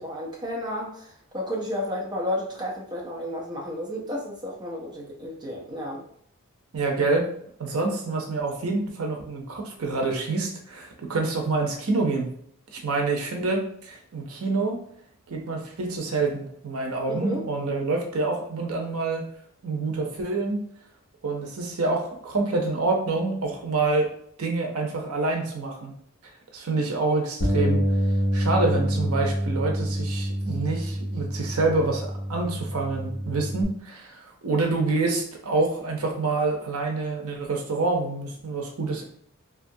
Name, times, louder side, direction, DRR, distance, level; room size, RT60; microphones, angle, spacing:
voice 1, 0.0-6.0 17.1-17.5, left 1 dB, 20° right, -3 dB, 0.5 m, -32 dB
voice 2, 6.7-7.3 7.6-12.3 12.7-14.8 15.3-19.3 19.6-20.6 21.2-24.1 24.4-25.9 26.5-27.8 28.3-39.1, right 3 dB, 85° right, 1 dB, 0.6 m, -27 dB
Bass guitar, 27.4-33.6, equal, 70° left, 1.0 m, -27 dB
2.8 x 2.3 x 2.6 m, 0.66 s
head